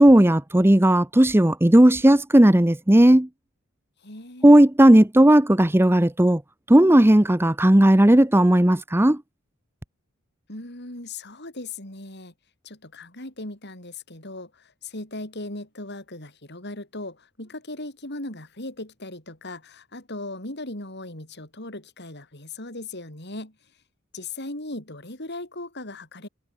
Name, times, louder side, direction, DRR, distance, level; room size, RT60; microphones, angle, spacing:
voice 1, 0.0-3.3 4.4-6.4 6.7-9.2, right 1 dB, 10° right, 0.7 m, -15 dB
voice 2, 4.0-4.6 10.5-12.3 12.6-23.6 24.1-26.3, left 2 dB, 50° left, 6.2 m, -38 dB
head